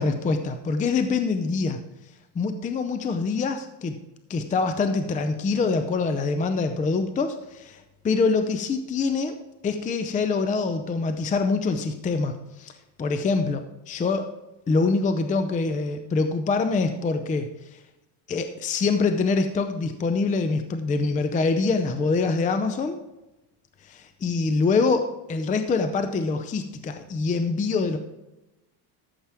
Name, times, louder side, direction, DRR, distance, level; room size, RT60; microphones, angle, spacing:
voice 1, 0.0-1.8 2.4-4.0 4.3-9.4 9.6-12.7 13.0-14.3 14.7-17.8 18.3-23.0 23.8-28.0, left 4 dB, 15° left, 8 dB, 0.5 m, -25 dB
13.5 x 7.2 x 3.5 m, 0.96 s
cardioid pair, 135°, 49 cm